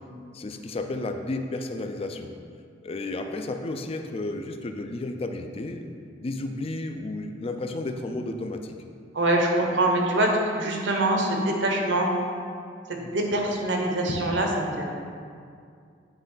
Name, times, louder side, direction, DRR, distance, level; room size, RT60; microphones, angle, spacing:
voice 1, 0.3-2.3 2.8-5.9 6.2-8.8, left 2 dB, 30° left, 6 dB, 0.4 m, -32 dB
voice 2, 9.1-12.1 12.9-14.9, right 1 dB, 70° right, 1 dB, 0.9 m, -24 dB
8.9 x 3.6 x 3.9 m, 2.3 s
head